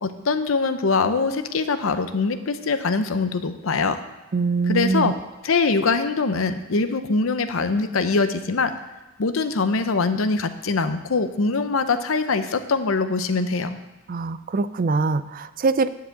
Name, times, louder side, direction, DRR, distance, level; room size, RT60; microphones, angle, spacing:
voice 1, 0.0-4.0 4.7-5.1 5.4-8.7 9.2-13.8, left 4 dB, 85° left, 10 dB, 0.7 m, -23 dB
voice 2, 4.3-5.1 14.1-15.9, right 4 dB, 45° right, 14 dB, 0.4 m, -23 dB
10.0 x 4.8 x 7.9 m, 1.1 s
head